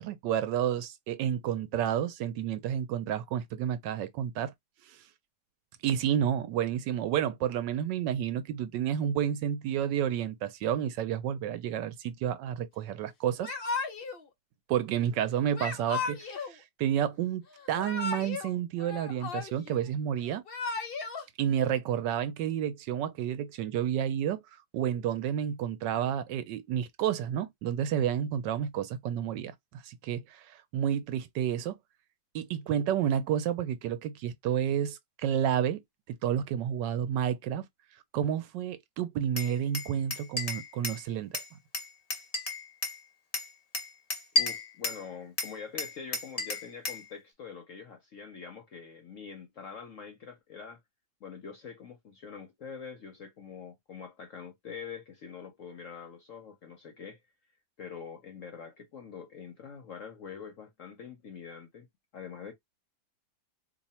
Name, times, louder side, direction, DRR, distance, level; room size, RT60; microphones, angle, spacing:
voice 1, 0.0-4.5 4.8-5.0 5.8-13.5 14.7-20.4 21.4-31.8 32.3-35.8 36.1-37.6 38.1-41.4, right 9 dB, 75° right, 1.2 m, -30 dB
Yell / Crying sobbing, 13.4-14.2 15.5-16.5 17.6-18.5 18.8-19.8 20.3-21.2, left 4 dB, 80° left, 0.5 m, -35 dB
Glass, 39.4-41.0 41.3-43.0 43.3-45.0 45.4-47.0, left 1 dB, 30° left, 0.7 m, -33 dB
voice 2, 44.3-50.8 51.2-57.2 57.8-61.9 62.1-62.5, left 6 dB, 60° left, 0.8 m, -44 dB
3.0 x 2.3 x 4.2 m
omnidirectional pair, 2.0 m